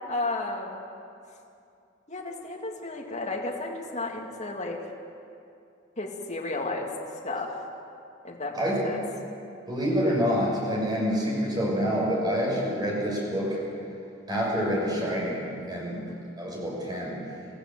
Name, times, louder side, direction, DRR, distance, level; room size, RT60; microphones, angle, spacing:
voice 1, 0.1-0.8 2.1-4.8 6.0-6.9 7.2-7.6 8.2-9.0 15.8-16.2, left 2 dB, 35° left, -1 dB, 2.5 m, -33 dB
voice 2, 9.7-13.6 14.3-17.2, equal, 20° right, -3 dB, 7.3 m, -27 dB
27.5 x 15.5 x 7.7 m, 2.5 s
head